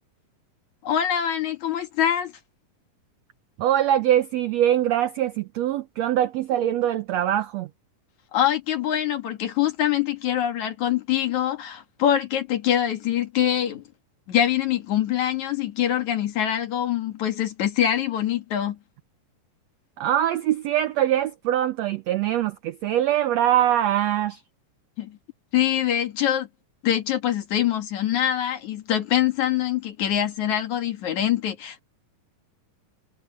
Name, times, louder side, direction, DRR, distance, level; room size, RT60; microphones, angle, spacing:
voice 1, 0.8-2.3 8.3-13.8 14.3-18.8 25.0-25.2 25.5-26.5 26.8-31.8, left 10 dB, 60° left, 3.1 m, -24 dB
voice 2, 3.6-7.7 20.0-24.4, right 11 dB, 80° right, 1.5 m, -23 dB
omnidirectional pair, 3.9 m